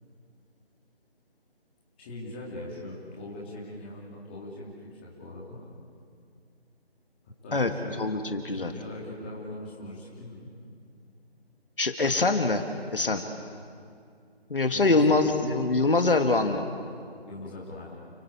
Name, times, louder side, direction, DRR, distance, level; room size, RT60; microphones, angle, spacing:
voice 1, 2.0-5.7 7.4-8.0 8.5-10.5 14.7-15.3 17.2-17.9, left 1 dB, 10° left, -5 dB, 2.8 m, -41 dB
voice 2, 8.0-8.7 11.8-12.6 12.9-13.2 14.5-16.7, left 3 dB, 55° left, 5 dB, 1.9 m, -24 dB
29.5 x 19.5 x 8.6 m, 2.3 s
figure-of-eight pair, 170°, 32 cm